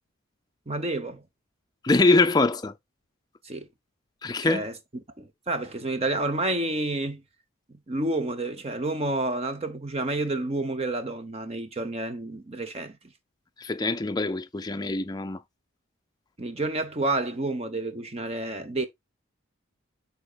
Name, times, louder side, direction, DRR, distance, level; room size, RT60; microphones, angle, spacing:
voice 1, 0.7-1.2 3.4-3.7 4.4-4.7 5.2-7.2 7.7-13.0 16.4-18.9, right 2 dB, 30° right, 0.9 m, -29 dB
voice 2, 1.8-2.7 4.2-4.7 13.6-15.4, left 3 dB, 20° left, 0.4 m, -23 dB
11.5 x 4.2 x 2.4 m
head